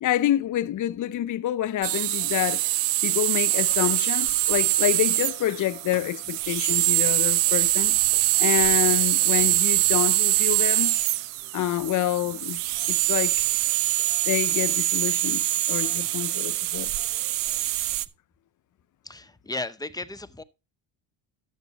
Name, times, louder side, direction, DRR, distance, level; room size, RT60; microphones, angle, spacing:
voice 1, 0.0-2.7 3.0-8.0 8.4-11.0 11.5-12.6 12.9-13.6 14.3-16.9, left 13 dB, 45° left, 0.7 m, -27 dB
sound 1, 1.8-18.0, right 17 dB, 90° right, 0.7 m, -24 dB
voice 2, 19.0-20.4, left 2 dB, 10° left, 0.7 m, -35 dB
13.0 x 8.0 x 3.0 m
supercardioid pair, 90°, 45 cm